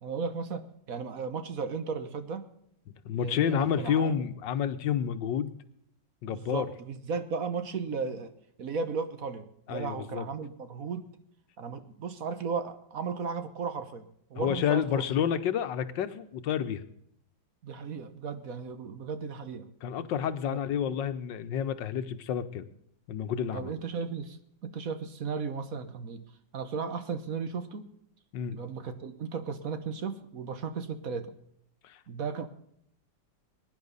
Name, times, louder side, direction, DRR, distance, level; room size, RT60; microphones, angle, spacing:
voice 1, 0.0-2.5 3.2-4.2 6.2-8.3 8.6-11.1 11.6-14.0 14.3-15.0 17.6-19.7 20.5-20.6 20.9-21.0 23.5-26.2 26.5-27.9 28.5-31.3 32.1-32.5, right 5 dB, 55° right, 9 dB, 1.4 m, -35 dB
voice 2, 3.0-5.5 6.2-6.7 9.7-10.3 14.4-16.8 19.8-22.7 23.1-23.7 28.3-28.6 31.8-32.0, left 8 dB, 90° left, 11 dB, 1.6 m, -29 dB
21.0 x 10.0 x 4.0 m, 0.72 s
omnidirectional pair, 1.9 m